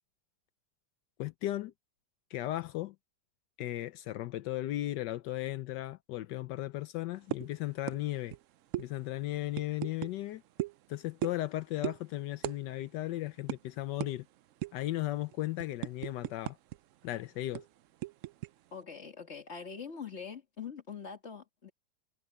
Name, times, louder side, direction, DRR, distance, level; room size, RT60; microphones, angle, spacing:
voice 1, 1.2-1.7 2.3-2.9 3.6-8.4 8.8-10.4 10.9-14.3 14.7-16.6 17.0-17.6, left 15 dB, 80° left, 1.3 m, -36 dB
sound 1, 7.3-7.5 7.9-8.0 8.3-8.4 8.7-8.9 9.5-10.1 10.6-10.8 11.2-11.5 11.8-12.0 12.4-12.6 12.9-13.0 13.5-13.6 14.0-14.1 14.6-14.9 15.3-16.8 17.0-17.1 17.5-18.5, right 13 dB, 75° right, 0.7 m, -36 dB
voice 2, 18.7-21.7, left 6 dB, 40° left, 2.1 m, -43 dB
omnidirectional pair, 1.9 m